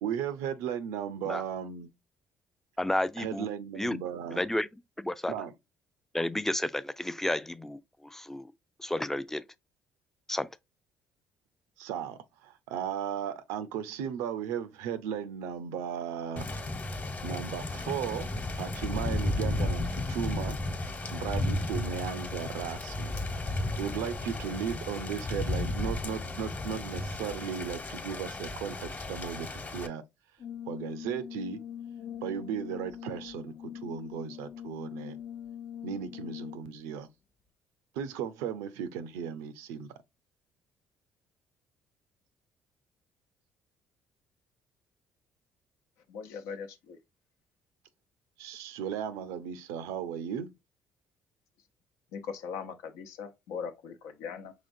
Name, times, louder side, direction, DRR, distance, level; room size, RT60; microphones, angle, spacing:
voice 1, 0.0-1.9 3.2-4.4 5.3-5.5 11.8-16.5 17.2-18.3 18.6-20.6 21.1-23.2 23.8-30.0 30.7-31.6 32.2-35.2 35.8-37.1 37.9-40.0 48.4-50.5, right 8 dB, 85° right, 0.6 m, -36 dB
voice 2, 2.8-3.5 3.8-4.0 4.3-4.7 5.0-5.3 6.1-8.5 8.8-9.4 10.3-10.5, left 1 dB, 5° left, 0.4 m, -31 dB
Thunder / Rain, 16.4-29.9, left 2 dB, 35° left, 1.2 m, -34 dB
Brass instrument, 30.4-36.8, left 9 dB, 50° left, 0.7 m, -42 dB
voice 3, 46.1-47.0 52.1-54.5, left 6 dB, 85° left, 0.8 m, -40 dB
5.0 x 3.5 x 2.6 m
supercardioid pair, 70°, 5 cm